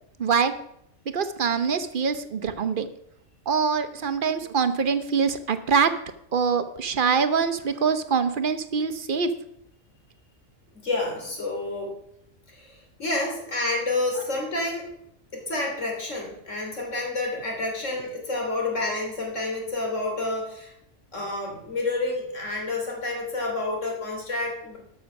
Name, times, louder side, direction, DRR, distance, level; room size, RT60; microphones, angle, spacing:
voice 1, 0.2-0.5 1.1-2.9 3.5-5.9 6.3-9.3, right 6 dB, 50° right, 11 dB, 0.9 m, -24 dB
voice 2, 10.7-11.9 12.5-14.9 15.3-20.7 21.1-24.8, left 2 dB, 75° left, 0 dB, 3.3 m, -29 dB
12.5 x 6.3 x 6.0 m, 0.75 s
omnidirectional pair, 1.3 m